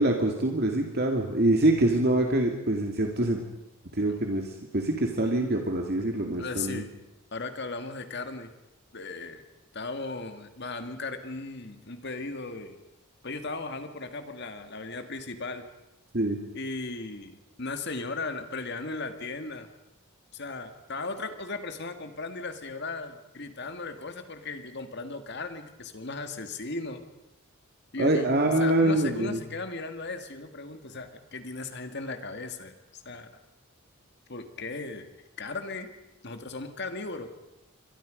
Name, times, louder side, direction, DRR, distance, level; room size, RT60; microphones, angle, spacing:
voice 1, 0.0-3.4 3.9-6.8 16.1-16.4 28.0-29.4, right 1 dB, 50° right, 2 dB, 2.3 m, -25 dB
voice 2, 6.4-6.9 7.3-8.5 8.9-9.4 9.7-12.8 13.2-15.7 16.5-19.7 20.3-27.0 27.9-28.3 28.6-33.4 34.3-35.1 35.4-35.9 36.2-37.3, left 3 dB, 55° left, 7 dB, 2.1 m, -37 dB
28.0 x 23.5 x 5.3 m, 0.90 s
head